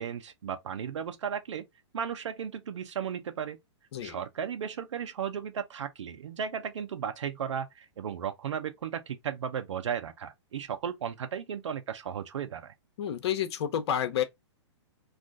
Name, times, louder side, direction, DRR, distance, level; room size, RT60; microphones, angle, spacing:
voice 1, 0.0-1.6 1.9-3.6 4.0-12.7, right 8 dB, 80° right, 0.6 m, -35 dB
voice 2, 13.0-14.2, left 9 dB, 60° left, 0.6 m, -29 dB
2.4 x 2.4 x 3.5 m
hypercardioid pair, 135°, 15 cm